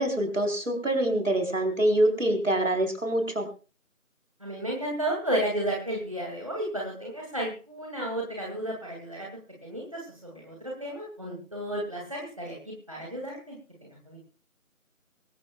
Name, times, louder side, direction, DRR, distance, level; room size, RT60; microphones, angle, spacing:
voice 1, 0.0-3.5, right 1 dB, 60° right, 5 dB, 4.3 m, -25 dB
voice 2, 4.4-9.3 9.6-13.6 14.1-14.2, right 1 dB, 25° right, -2 dB, 2.5 m, -33 dB
24.0 x 13.0 x 2.4 m, 0.35 s
figure-of-eight pair, 175°, 42 cm